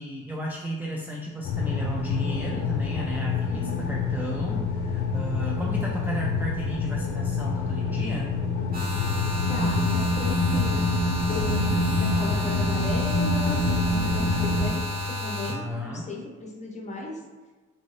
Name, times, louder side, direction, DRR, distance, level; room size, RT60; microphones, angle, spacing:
voice 1, 0.0-8.3 15.5-16.1, right 1 dB, 5° right, -3 dB, 0.3 m, -34 dB
sound 1, 1.4-14.7, left 3 dB, 70° left, 0.6 m, -26 dB
voice 2, 3.5-4.0 9.5-10.8 11.3-17.2, left 2 dB, 25° left, -2 dB, 0.8 m, -36 dB
sound 2, 8.7-15.5, left 2 dB, 30° right, 1.2 m, -31 dB
2.6 x 2.5 x 3.2 m, 1.3 s
cardioid pair, 90°, 30 cm